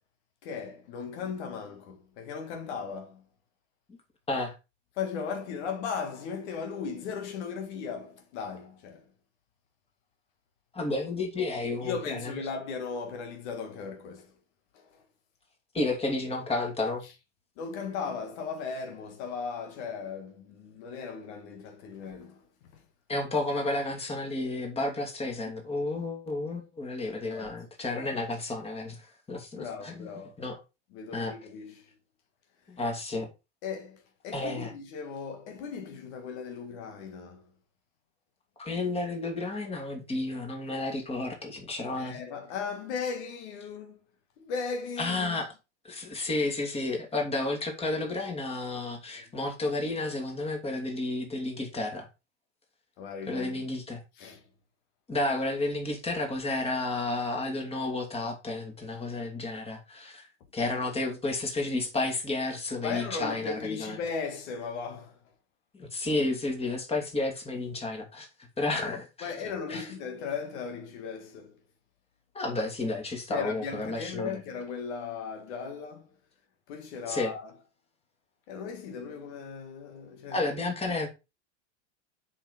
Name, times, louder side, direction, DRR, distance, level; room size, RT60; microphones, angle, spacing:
voice 1, 0.4-3.2 5.0-9.1 11.8-14.3 14.7-15.0 17.0-17.1 17.6-22.5 22.7-22.8 25.4-25.5 27.3-27.5 27.9-28.2 29.5-30.4 30.9-31.9 33.6-37.4 42.0-44.0 44.4-45.4 53.0-53.6 54.2-54.5 62.8-65.2 66.9-67.1 68.8-71.6 73.3-76.1 76.7-77.5 78.5-80.5, left 5 dB, 70° left, 1.7 m, -37 dB
voice 2, 10.7-12.3 15.7-17.0 23.1-30.1 30.4-30.6 31.1-31.3 32.7-33.3 34.3-34.7 38.6-42.2 45.0-45.5 45.8-52.1 53.3-54.0 55.1-60.3 60.5-64.0 65.7-68.3 68.6-69.9 72.3-74.4 77.1-77.3 80.3-81.1, left 2 dB, 15° left, 2.7 m, -31 dB
7.1 x 5.7 x 5.0 m
supercardioid pair, 135°, 35 cm